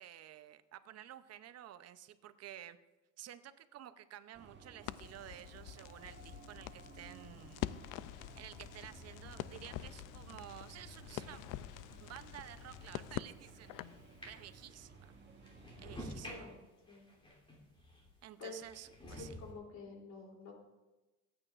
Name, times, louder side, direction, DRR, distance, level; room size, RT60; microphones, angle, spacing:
voice 1, 0.0-2.8 3.2-7.7 8.3-11.4 12.0-13.7 14.2-15.2 15.8-16.5 18.2-19.4, right 12 dB, 50° right, 12 dB, 0.7 m, -52 dB
sound 1, 4.3-16.4, right 4 dB, 35° right, 1.4 m, -57 dB
Crackle, 4.8-14.0, left 15 dB, 85° left, 0.5 m, -46 dB
sound 2, 10.4-18.2 18.6-19.5, equal, 20° left, 3.0 m, -53 dB
voice 2, 16.2-17.2 18.4-18.6 19.0-20.5, left 3 dB, 60° left, 0 dB, 3.1 m, -49 dB
25.0 x 9.0 x 2.5 m, 1.1 s
cardioid pair, 135°, 31 cm